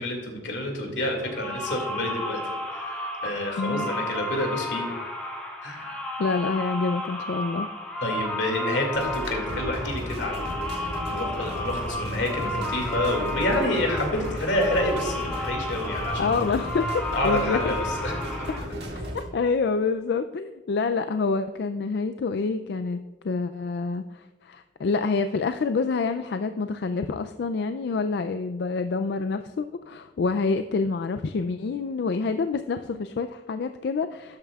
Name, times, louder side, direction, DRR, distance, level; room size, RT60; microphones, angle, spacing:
voice 1, 0.0-2.4 2.7-4.9 5.6-6.0 8.0-16.4 17.1-18.1, left 1 dB, 85° left, 2 dB, 2.3 m, -28 dB
sound 1, 1.2-18.6, left 1 dB, 5° left, 1.3 m, -33 dB
voice 2, 6.2-7.7 16.2-17.7 18.9-34.4, left 4 dB, 65° left, 9 dB, 0.4 m, -27 dB
sound 2, 8.9-19.2, equal, 70° right, 1.9 m, -34 dB
12.5 x 8.9 x 2.3 m, 1.3 s
head